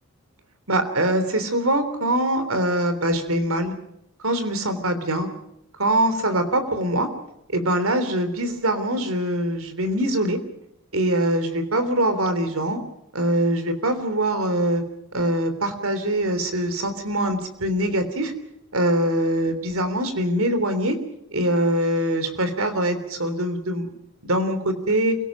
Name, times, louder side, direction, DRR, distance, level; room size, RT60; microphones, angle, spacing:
voice 1, 0.7-3.7 4.2-5.3 5.8-7.1 7.5-10.4 10.9-12.8 13.1-14.8 15.1-18.3 18.7-21.0 21.3-23.9 24.2-25.2, right 1 dB, 85° right, 9 dB, 3.4 m, -23 dB
29.0 x 18.0 x 6.2 m, 0.78 s
head